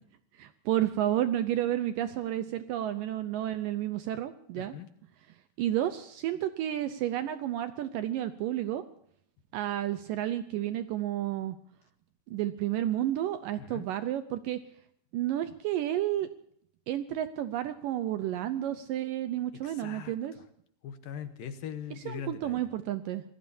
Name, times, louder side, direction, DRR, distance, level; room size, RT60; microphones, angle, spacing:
voice 1, 0.4-4.7 5.6-8.8 9.5-11.6 12.3-14.6 15.1-16.3 16.9-20.3 22.1-23.2, right 12 dB, 75° right, 11 dB, 2.0 m, -31 dB
voice 2, 4.5-4.9 13.6-13.9 19.5-20.4 20.8-22.7, left 8 dB, 70° left, 10 dB, 2.5 m, -41 dB
27.0 x 18.0 x 2.7 m, 0.67 s
omnidirectional pair, 4.6 m